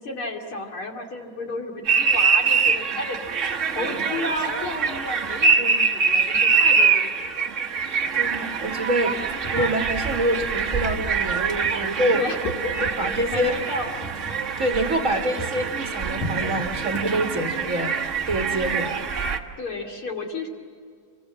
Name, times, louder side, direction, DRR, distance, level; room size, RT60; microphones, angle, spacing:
voice 1, 0.0-3.2 3.7-7.4 12.1-12.4 12.6-12.9 13.3-14.0 19.6-20.5, left 2 dB, 45° left, 1 dB, 3.3 m, -32 dB
sound 1, 1.9-19.4, right 5 dB, 90° right, 0.6 m, -24 dB
voice 2, 8.1-9.2 9.5-12.2 13.0-13.5 14.6-18.0 18.3-19.0, right 1 dB, 35° right, 4 dB, 1.3 m, -26 dB
sound 2, 9.4-15.1 15.4-18.3, equal, 80° left, 4.4 m, -37 dB
28.0 x 24.0 x 7.4 m, 2.1 s
omnidirectional pair, 3.4 m